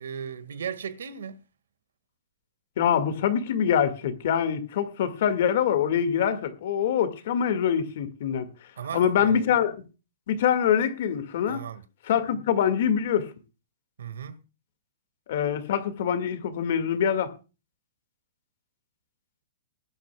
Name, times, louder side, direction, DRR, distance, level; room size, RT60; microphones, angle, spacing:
voice 1, 0.0-1.4 8.8-9.5 11.5-11.8 14.0-14.4, right 7 dB, 85° right, 1.8 m, -36 dB
voice 2, 2.8-8.5 8.9-9.9 10.3-11.6 12.1-13.3 15.3-17.3, left 8 dB, 45° left, 1.9 m, -24 dB
21.0 x 11.5 x 2.3 m
hypercardioid pair, 180°, 0 cm